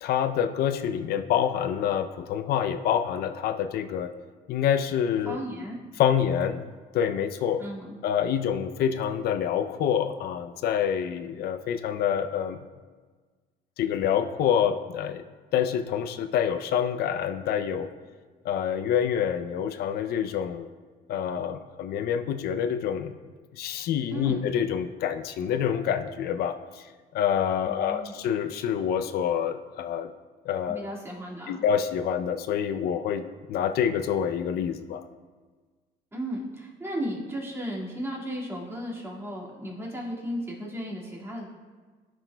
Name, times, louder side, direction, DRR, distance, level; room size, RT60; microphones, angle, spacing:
voice 1, 0.0-4.1 4.5-5.4 6.0-6.6 6.9-7.6 8.0-12.6 13.8-15.2 15.5-17.9 18.4-20.7 21.1-23.1 23.5-26.8 27.1-30.1 30.5-30.8 31.5-33.2 33.5-35.0, left 8 dB, 65° left, 9 dB, 0.5 m, -27 dB
voice 2, 5.3-5.8 7.6-8.0 24.1-24.4 27.7-28.1 30.7-31.6 36.1-41.5, equal, 15° right, -4 dB, 2.0 m, -35 dB
12.5 x 6.1 x 2.2 m, 1.4 s
cardioid pair, 110°, 17 cm